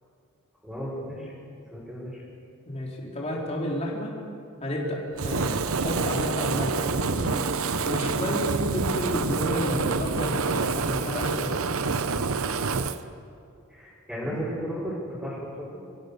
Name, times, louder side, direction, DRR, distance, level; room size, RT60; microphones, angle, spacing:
voice 1, 0.6-1.3 1.7-2.2 13.7-15.5, equal, 5° right, -9 dB, 5.5 m, -34 dB
voice 2, 2.7-4.1 4.6-7.4 7.8-11.5, left 1 dB, 30° left, -3 dB, 3.7 m, -31 dB
Fire, 5.2-13.0, right 4 dB, 90° right, 0.8 m, -27 dB
25.5 x 15.5 x 6.8 m, 2.5 s
head